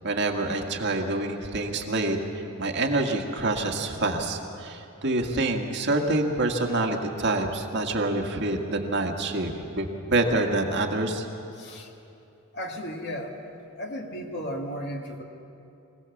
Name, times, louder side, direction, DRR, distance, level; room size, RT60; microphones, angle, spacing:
voice 1, 0.0-2.2 2.6-11.3, right 2 dB, 55° right, 2 dB, 1.8 m, -26 dB
voice 2, 11.5-11.9 12.5-13.3 13.8-15.2, equal, 50° left, 2 dB, 2.2 m, -34 dB
25.5 x 17.5 x 7.2 m, 2.7 s
head